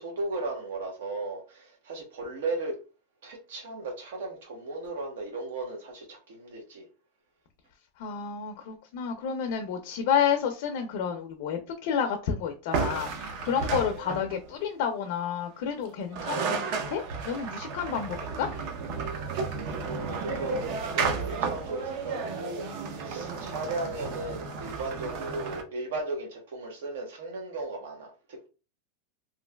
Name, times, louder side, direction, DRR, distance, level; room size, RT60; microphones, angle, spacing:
voice 1, 0.0-2.8 3.2-6.8 19.6-28.5, right 2 dB, 75° right, 1.0 m, -36 dB
voice 2, 8.0-18.5, left 7 dB, 50° left, 0.4 m, -30 dB
sound 1, 12.7-14.5 15.9-16.0 16.1-25.6, right 5 dB, 45° right, 0.4 m, -33 dB
3.0 x 2.4 x 2.2 m
supercardioid pair, 165°, 0 cm